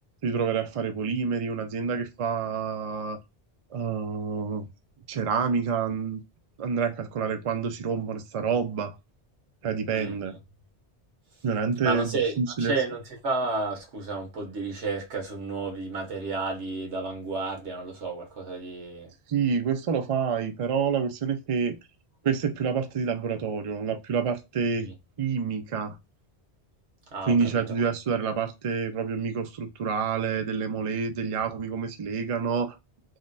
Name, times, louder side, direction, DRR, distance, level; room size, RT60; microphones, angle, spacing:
voice 1, 0.2-3.2 3.7-4.7 5.1-6.2 6.6-8.9 9.6-10.4 11.4-12.7 19.3-21.8 22.2-24.9 25.2-26.0 27.3-32.8, right 6 dB, 50° right, 0.4 m, -28 dB
voice 2, 11.8-19.1 24.8-24.9 27.1-27.5, right 3 dB, 85° right, 1.3 m, -31 dB
3.7 x 2.2 x 2.5 m
omnidirectional pair, 1.1 m